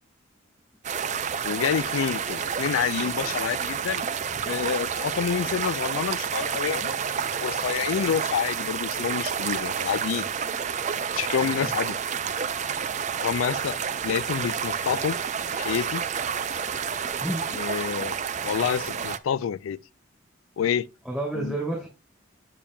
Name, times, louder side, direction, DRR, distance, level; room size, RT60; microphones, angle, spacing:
sound 1, 0.8-19.2, right 7 dB, 35° right, 0.4 m, -29 dB
voice 1, 1.4-4.0 4.5-6.9 7.4-10.3 11.1-11.9 13.2-13.8 14.0-15.2 15.5-16.0 17.5-18.2 18.4-19.8 20.6-20.9 21.4-21.6, left 7 dB, 80° left, 0.3 m, -28 dB
voice 2, 17.2-17.6 17.9-18.1 21.0-21.9, right 1 dB, ahead, 2.5 m, -31 dB
8.6 x 8.5 x 2.2 m
head